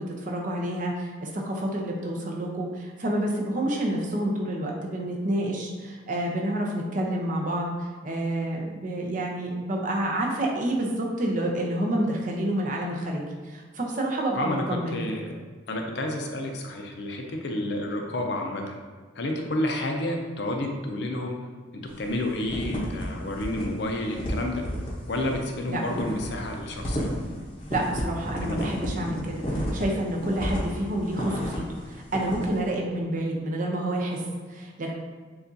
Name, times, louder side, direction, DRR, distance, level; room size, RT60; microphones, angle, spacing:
voice 1, 0.0-15.0 25.7-25.8 27.7-34.9, right 1 dB, 45° right, -1 dB, 0.6 m, -29 dB
voice 2, 14.3-15.3 15.7-18.8 19.1-21.4 21.7-24.7 25.1-27.2 28.4-28.8, left 1 dB, 65° left, 2 dB, 0.6 m, -30 dB
sound 1, 21.9-22.1 22.4-23.1 23.3-23.6 23.9-31.8 32.1-32.5, equal, 30° left, 0.7 m, -31 dB
6.7 x 2.4 x 2.6 m, 1.5 s
head